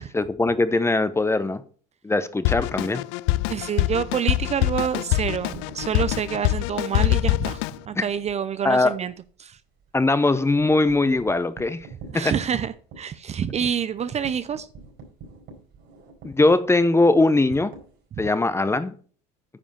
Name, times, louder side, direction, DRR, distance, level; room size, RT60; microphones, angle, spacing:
voice 1, 0.0-1.6 2.0-3.1 8.0-8.1 8.6-8.9 9.9-11.9 12.1-12.3 16.2-17.7 18.2-19.0, left 2 dB, 15° left, 0.9 m, -21 dB
Drum kit, 2.4-7.8, left 17 dB, 70° left, 0.5 m, -24 dB
voice 2, 3.5-9.1 9.4-9.6 12.1-14.7, right 8 dB, 35° right, 0.6 m, -27 dB
sound 1, 5.4-8.4 8.8-8.9 9.2-9.3 9.7-18.5, right 3 dB, 60° right, 4.3 m, -46 dB
9.8 x 5.2 x 5.8 m
hypercardioid pair, 80°, 20 cm